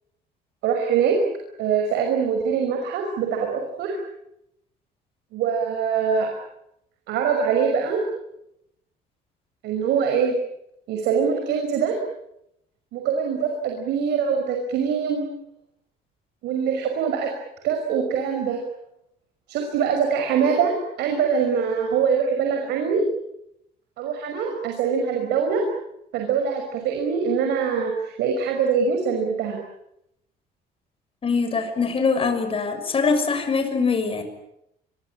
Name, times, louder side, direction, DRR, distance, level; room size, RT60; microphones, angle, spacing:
voice 1, 0.6-1.2 1.6-4.0 5.3-6.3 7.1-8.0 9.6-10.4 10.9-12.0 12.9-15.2 16.4-17.3 17.6-18.6 19.5-23.0 24.0-25.6 26.1-29.6, right 6 dB, 80° right, 3 dB, 5.7 m, -23 dB
voice 2, 31.2-34.2, left 4 dB, 35° left, 7 dB, 6.6 m, -23 dB
26.0 x 24.0 x 8.9 m, 0.81 s
cardioid pair, 110°, 17 cm